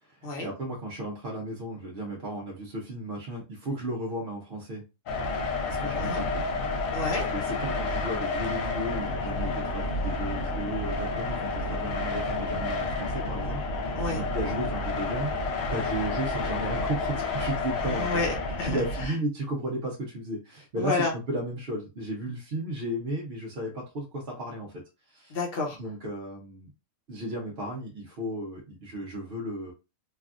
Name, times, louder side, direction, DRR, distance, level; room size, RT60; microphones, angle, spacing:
voice 1, 0.0-4.8 5.7-6.4 7.3-18.2 18.6-24.7 25.1-25.4 25.8-26.7 27.1-29.7, right 1 dB, 55° right, -3 dB, 0.8 m, -34 dB
sound 1, 5.1-19.1, left 3 dB, 80° left, 1.1 m, -30 dB
voice 2, 6.9-7.3 13.9-14.2 17.8-19.1 20.8-21.1 25.3-25.8, left 3 dB, 50° left, 0 dB, 1.0 m, -30 dB
3.3 x 2.3 x 2.4 m, 0.29 s
omnidirectional pair, 1.4 m